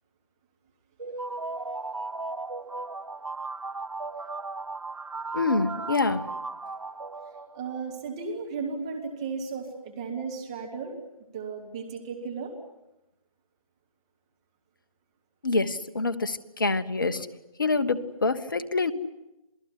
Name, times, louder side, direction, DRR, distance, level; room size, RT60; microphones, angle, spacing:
sound 1, 1.0-7.8, right 3 dB, 60° right, 1.4 m, -36 dB
voice 1, 5.3-6.3 15.4-17.3 17.6-18.9, left 3 dB, 35° left, 10 dB, 1.2 m, -26 dB
voice 2, 7.5-10.9 11.3-12.5, right 5 dB, 10° right, 1 dB, 1.3 m, -35 dB
27.5 x 19.0 x 10.0 m, 0.93 s
figure-of-eight pair, 160°, 19 cm